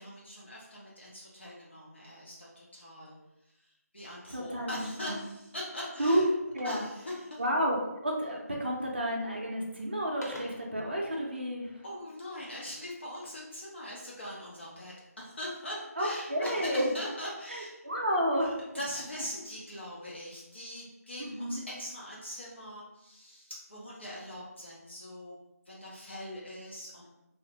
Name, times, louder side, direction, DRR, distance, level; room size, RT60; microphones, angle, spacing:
voice 1, 0.0-3.1 3.5-6.3 6.6-7.4 11.8-17.8 18.4-25.4 25.7-27.1, left 1 dB, 45° left, -5 dB, 0.6 m, -42 dB
voice 2, 4.3-5.2 6.0-6.2 6.5-6.8 7.4-7.8 8.0-11.8 16.0-16.9 17.5-18.5 21.2-21.6, equal, 40° right, -1 dB, 0.5 m, -31 dB
sound 1, 6.4-7.6 8.3-8.6 8.9-9.4 9.8-10.8 12.3-13.5 14.0-14.7 15.2-15.8 16.2-16.9, left 1 dB, 75° left, 0.8 m, -51 dB
3.0 x 2.0 x 2.8 m, 0.92 s
figure-of-eight pair, 165°, 9 cm